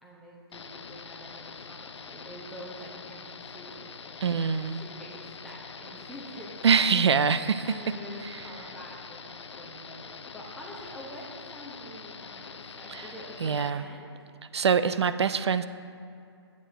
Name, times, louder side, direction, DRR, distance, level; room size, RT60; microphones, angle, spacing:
voice 1, 0.0-6.8 7.7-14.1, equal, ahead, -5 dB, 0.9 m, -46 dB
sound 1, 0.5-13.7, left 5 dB, 85° left, 0.5 m, -44 dB
voice 2, 4.2-4.8 6.6-7.7 12.9-13.1 13.4-13.8 14.5-15.7, right 6 dB, 75° right, 13 dB, 0.4 m, -24 dB
9.2 x 8.2 x 3.4 m, 2.5 s
hypercardioid pair, 150°, 14 cm